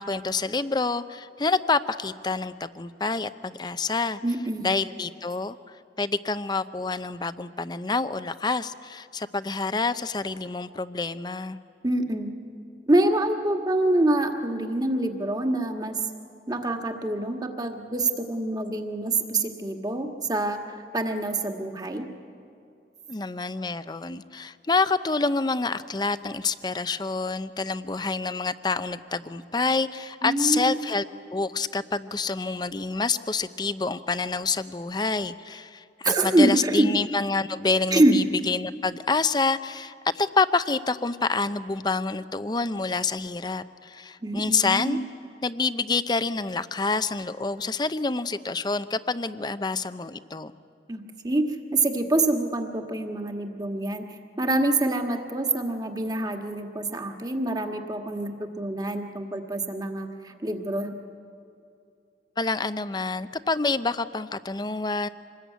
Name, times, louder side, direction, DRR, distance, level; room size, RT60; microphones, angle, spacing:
voice 1, 0.0-4.2 4.6-5.6 6.0-11.6 23.1-31.0 31.3-45.0 45.4-50.5 62.4-65.1, left 4 dB, 25° left, 13 dB, 0.6 m, -27 dB
voice 2, 4.2-4.7 11.8-12.3 12.9-15.9 16.5-20.6 20.9-22.1 30.2-30.8 36.0-36.9 37.9-38.2 44.2-45.0 50.9-51.4 51.7-54.0 54.4-60.9, right 2 dB, 25° right, 4 dB, 1.7 m, -25 dB
26.0 x 20.5 x 9.3 m, 2.6 s
head